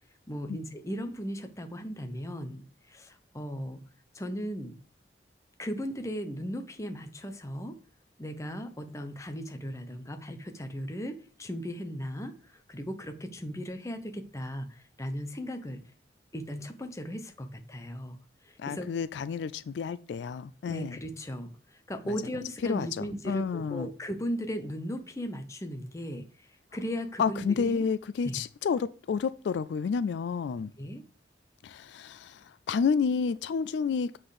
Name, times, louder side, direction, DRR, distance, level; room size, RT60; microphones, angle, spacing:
voice 1, 0.3-3.8 4.1-4.8 5.6-7.8 8.2-15.8 16.3-18.2 18.4-18.9 20.7-26.3 26.7-27.8 28.2-28.4 30.8-31.0, equal, 15° left, 0.8 m, -37 dB
voice 2, 18.6-21.0 22.1-22.2 22.6-23.9 27.2-30.7 31.6-34.2, left 5 dB, 80° left, 0.3 m, -30 dB
7.7 x 4.2 x 4.9 m
head